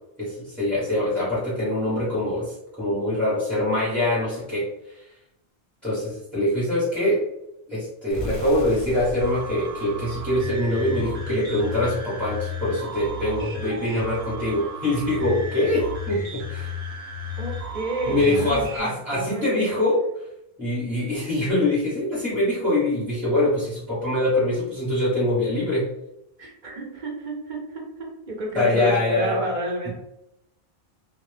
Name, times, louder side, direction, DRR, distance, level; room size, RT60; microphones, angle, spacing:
voice 1, 0.2-5.0 5.8-7.2 7.7-16.7 18.1-20.0 20.6-25.8 28.5-29.4, left 1 dB, ahead, -10 dB, 0.7 m, -24 dB
sound 1, 8.1-11.0, equal, 40° left, 0.6 m, -37 dB
sound 2, 9.2-18.8, left 1 dB, 80° right, 0.9 m, -33 dB
voice 2, 17.4-19.9 26.4-27.8 28.3-29.9, right 2 dB, 55° right, -1 dB, 0.7 m, -31 dB
2.1 x 2.0 x 3.1 m, 0.85 s
omnidirectional pair, 1.1 m